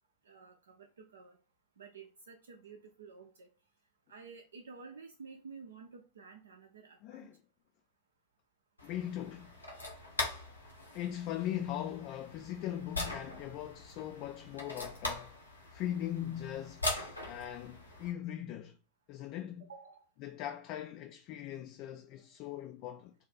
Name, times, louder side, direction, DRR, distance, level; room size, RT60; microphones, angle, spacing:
voice 1, 0.2-1.4 1.8-3.5 4.1-7.3 19.7-20.0, right 5 dB, 70° right, 0.5 m, -52 dB
voice 2, 7.0-7.4 8.8-9.5 10.9-15.3 15.7-16.8 17.3-18.8 19.1-19.7 20.2-23.1, left 11 dB, 40° left, 0.3 m, -40 dB
sound 1, 8.8-18.1, left 2 dB, 85° left, 1.1 m, -41 dB
4.0 x 2.4 x 4.1 m
figure-of-eight pair, 90°, 0 cm